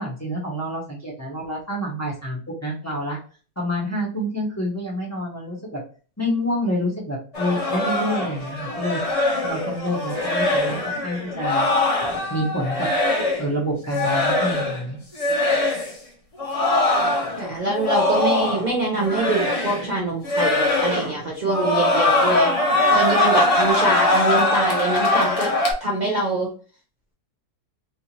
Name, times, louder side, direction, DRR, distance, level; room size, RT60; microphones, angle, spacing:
voice 1, 0.0-3.2 3.6-5.8 6.2-9.0 9.4-11.7 12.3-12.9 13.4-15.0, equal, 10° left, -4 dB, 0.8 m, -27 dB
sound 1, 7.3-13.5 13.9-14.8 15.1-15.9 16.4-18.7 19.0-19.9 20.2-21.2 21.5-25.7, left 2 dB, 70° left, 0.3 m, -22 dB
voice 2, 17.4-22.5 22.9-25.5 25.8-26.5, right 2 dB, 80° right, -2 dB, 0.4 m, -24 dB
3.4 x 2.8 x 2.9 m, 0.38 s
omnidirectional pair, 1.9 m